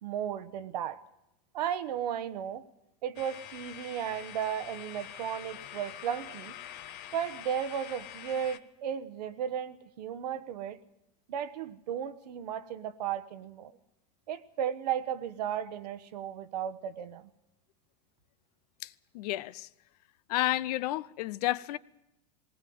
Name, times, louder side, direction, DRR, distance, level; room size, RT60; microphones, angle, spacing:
voice 1, 0.0-1.0 1.5-2.7 3.0-6.6 7.1-10.8 11.3-13.7 14.3-17.3, right 9 dB, 85° right, 1.1 m, -35 dB
sound 1, 3.2-8.6, left 11 dB, 50° left, 1.1 m, -45 dB
voice 2, 18.8-19.7 20.3-21.8, left 16 dB, 70° left, 0.7 m, -31 dB
19.0 x 18.5 x 7.8 m
supercardioid pair, 115°, 20 cm